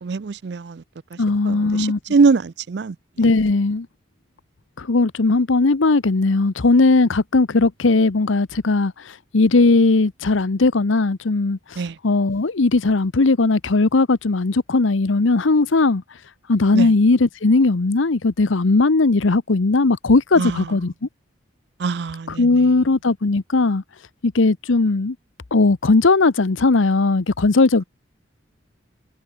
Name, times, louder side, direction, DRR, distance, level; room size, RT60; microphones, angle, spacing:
voice 1, 0.0-0.8 1.5-2.9 11.8-11.9 16.7-16.9 20.4-20.6 21.8-22.4, right 4 dB, 60° right, 0.4 m, -22 dB
voice 2, 1.2-2.0 3.2-3.9 4.8-16.0 16.5-21.1 22.3-23.8 24.2-25.2 25.5-27.8, left 3 dB, 85° left, 0.8 m, -18 dB
head